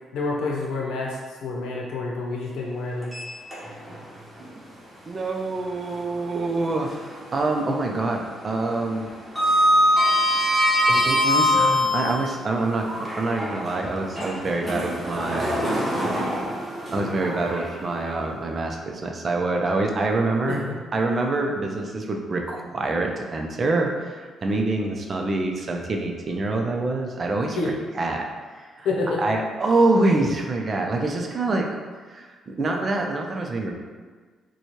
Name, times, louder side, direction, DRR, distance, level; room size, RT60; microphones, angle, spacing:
voice 1, 0.1-3.1 20.5-20.8 27.6-27.7 28.8-29.2, left 3 dB, 80° left, -2 dB, 0.8 m, -28 dB
Sliding door, 3.0-4.0 4.4-4.5 6.2-7.2 7.5-12.3 12.9-18.1, equal, 10° right, 1.2 m, -23 dB
voice 2, 5.1-9.1 9.5-9.7 10.9-15.6 16.9-20.6 20.9-27.6 27.9-28.9 29.2-31.7 32.1-33.7, right 2 dB, 40° right, 2 dB, 0.5 m, -26 dB
4.1 x 2.3 x 3.1 m, 1.5 s
cardioid pair, 90°, 0 cm